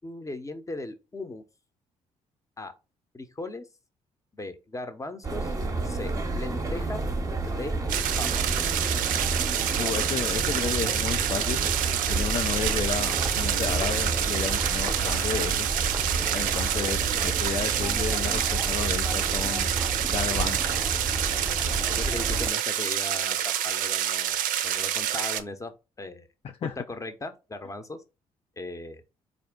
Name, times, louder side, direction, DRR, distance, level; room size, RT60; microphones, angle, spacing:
voice 1, 0.0-1.4 2.6-2.7 3.1-3.7 4.3-5.5 5.8-7.0 7.5-7.7 8.2-8.4 15.0-15.4 21.6-24.4 24.6-26.3 26.6-28.0 28.6-29.0, left 2 dB, 20° left, 0.8 m, -38 dB
sound 1, 5.2-22.5, right 3 dB, 20° right, 0.8 m, -30 dB
sound 2, 7.9-25.4, right 11 dB, 60° right, 0.4 m, -28 dB
voice 2, 9.8-11.6 12.1-15.7 16.3-19.7 20.1-20.6 26.6-26.7, left 7 dB, 40° left, 0.4 m, -32 dB
4.2 x 2.5 x 3.6 m
hypercardioid pair, 45°, 16 cm